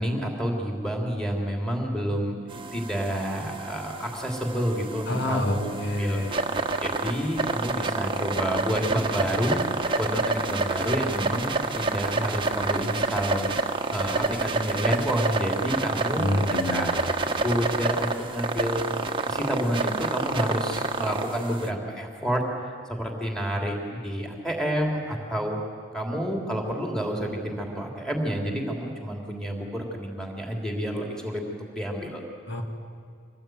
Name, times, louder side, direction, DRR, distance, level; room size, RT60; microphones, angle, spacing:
voice 1, 0.0-5.7 6.0-6.2 6.8-9.6 10.0-13.5 13.9-16.3 16.7-16.9 17.4-18.9 19.3-22.4 22.9-25.6 25.9-31.4 31.7-32.2, equal, 5° left, 1 dB, 3.2 m, -29 dB
sound 1, 2.5-21.7, right 3 dB, 25° right, 1.2 m, -29 dB
voice 2, 5.1-6.4 16.2-16.9 32.5-32.6, left 1 dB, 60° left, 3 dB, 2.3 m, -28 dB
25.5 x 19.0 x 9.3 m, 2.2 s
head